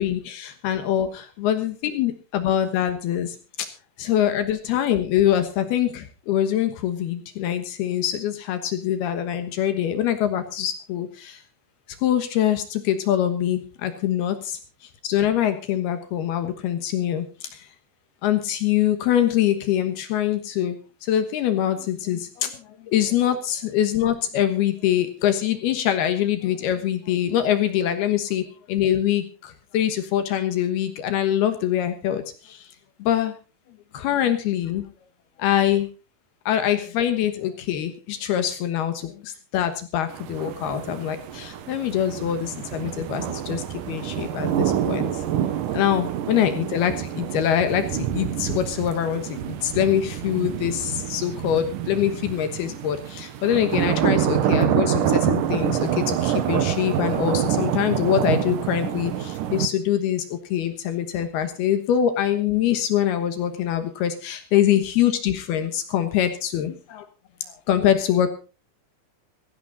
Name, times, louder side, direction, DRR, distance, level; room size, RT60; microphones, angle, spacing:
voice 1, 0.0-3.7 4.0-11.4 12.0-14.6 15.0-17.3 17.5-17.7 18.2-32.7 33.0-33.3 33.9-34.8 35.4-35.9 36.5-45.2 45.7-67.1 67.4-68.3, left 10 dB, 70° left, 9 dB, 2.8 m, -24 dB
sound 1, 40.1-59.7, right 10 dB, 90° right, 1.8 m, -26 dB
16.5 x 15.0 x 4.0 m, 0.35 s
omnidirectional pair, 5.5 m